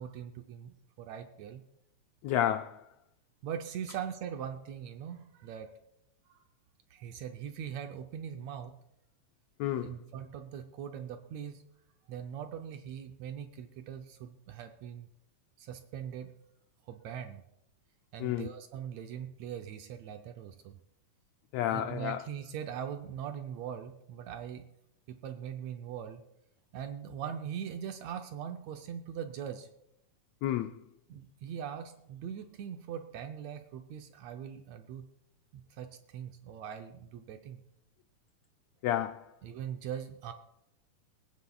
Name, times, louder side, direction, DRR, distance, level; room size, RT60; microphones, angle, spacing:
voice 1, 0.0-1.6 3.4-5.7 6.3-6.4 6.9-8.8 9.8-11.6 12.1-15.1 15.6-16.3 16.9-17.4 18.1-20.8 21.7-24.7 25.1-26.2 26.7-29.7 31.1-35.1 35.5-37.6 39.4-40.3, right 8 dB, 75° right, 1.7 m, -41 dB
voice 2, 2.2-2.8 9.6-9.9 18.2-18.5 21.5-22.2 30.4-30.7 38.8-39.2, left 12 dB, 90° left, 1.5 m, -30 dB
23.5 x 9.5 x 2.3 m
omnidirectional pair, 3.6 m